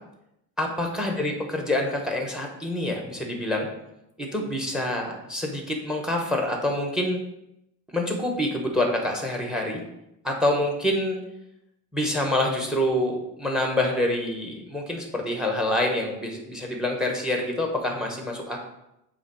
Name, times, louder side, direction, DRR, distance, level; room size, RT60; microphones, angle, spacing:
voice 1, 0.6-3.7 4.2-7.2 7.9-9.8 10.2-11.2 11.9-18.6, left 1 dB, ahead, 2 dB, 1.1 m, -26 dB
7.3 x 3.2 x 4.8 m, 0.84 s
cardioid pair, 135°, 38 cm